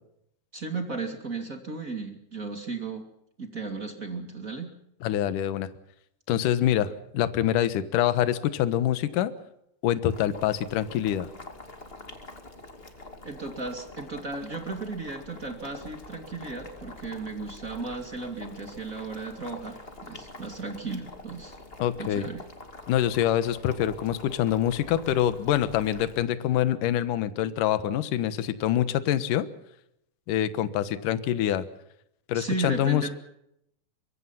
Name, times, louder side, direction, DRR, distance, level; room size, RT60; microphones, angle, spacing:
voice 1, 0.5-3.1 3.4-4.7 13.2-21.6 22.0-22.4 32.3-33.1, right 3 dB, 25° right, 4 dB, 2.2 m, -35 dB
voice 2, 5.0-5.7 6.3-9.3 9.8-11.3 21.8-22.2 22.9-29.5 30.3-31.6 32.3-33.0, left 11 dB, 65° left, 12 dB, 2.4 m, -25 dB
Boiling, 10.1-26.2, left 2 dB, 20° left, 1.5 m, -46 dB
24.0 x 23.5 x 5.7 m, 0.77 s
omnidirectional pair, 4.9 m